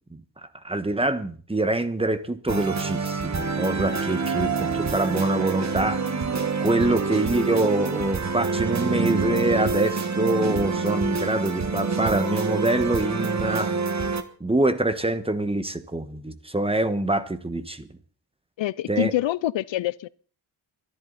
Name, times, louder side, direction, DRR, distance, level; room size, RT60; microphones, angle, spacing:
voice 1, 0.6-6.2 6.6-13.7 14.4-17.9 18.9-19.1, right 2 dB, 15° right, 1.2 m, -25 dB
sound 1, 2.5-14.2, right 4 dB, 40° right, 1.4 m, -26 dB
voice 2, 18.6-20.1, left 14 dB, 80° left, 0.6 m, -26 dB
24.0 x 11.5 x 4.1 m
wide cardioid pair, 130°, 44 cm